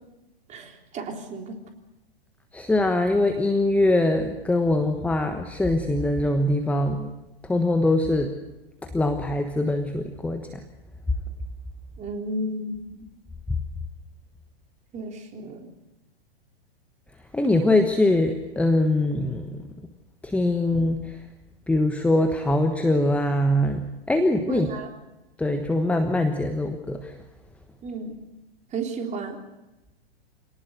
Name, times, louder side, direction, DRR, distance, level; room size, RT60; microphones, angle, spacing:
voice 1, 0.5-1.6 12.0-13.1 14.9-15.7 24.5-24.9 27.8-28.2 28.7-29.4, right 2 dB, 25° right, 2 dB, 3.6 m, -33 dB
voice 2, 2.5-7.1 7.5-8.3 8.8-10.4 13.5-13.6 17.3-19.6 20.2-21.0 21.7-24.7 25.4-27.1, left 1 dB, 5° left, 6 dB, 1.3 m, -23 dB
27.0 x 19.0 x 6.6 m, 1.0 s
figure-of-eight pair, 105°, 31 cm